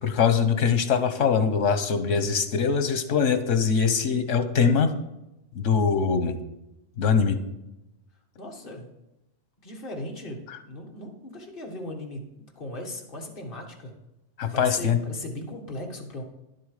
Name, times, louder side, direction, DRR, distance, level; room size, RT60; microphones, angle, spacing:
voice 1, 0.0-4.9 5.5-6.4 7.0-7.4 10.5-10.6 14.4-15.0, left 6 dB, 90° left, 9 dB, 1.3 m, -22 dB
voice 2, 8.4-8.9 9.6-12.2 12.6-13.9 14.5-16.2, left 1 dB, 45° left, 1 dB, 1.8 m, -37 dB
11.0 x 7.5 x 4.9 m, 0.93 s
omnidirectional pair, 1.3 m